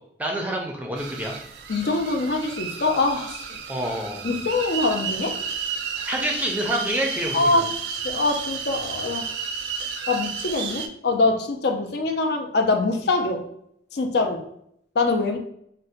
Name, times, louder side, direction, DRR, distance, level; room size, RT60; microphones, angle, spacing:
voice 1, 0.2-1.3 3.7-4.2 5.9-7.7, right 1 dB, 10° right, 0 dB, 0.4 m, -27 dB
sound 1, 1.0-10.9, right 6 dB, 80° right, 0.4 m, -32 dB
voice 2, 1.7-3.5 4.2-5.4 7.3-9.3 10.1-13.4 13.9-14.5 15.0-15.4, left 3 dB, 65° left, 4 dB, 0.4 m, -24 dB
2.6 x 2.1 x 3.9 m, 0.71 s
head